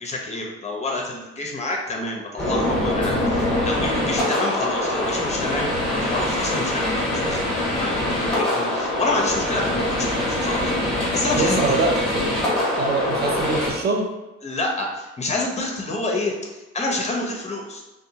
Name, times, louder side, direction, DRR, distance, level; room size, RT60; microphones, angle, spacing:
voice 1, 0.0-5.7 6.0-7.4 7.7-10.7 11.1-11.8 14.4-17.8, left 2 dB, 20° left, 0 dB, 0.7 m, -28 dB
sound 1, 2.4-13.7, left 1 dB, 5° left, 1.1 m, -23 dB
voice 2, 11.3-12.4 12.8-14.1, right 3 dB, 35° right, 2 dB, 0.6 m, -24 dB
2.6 x 2.2 x 2.7 m, 1.0 s
cardioid pair, 90°, 30 cm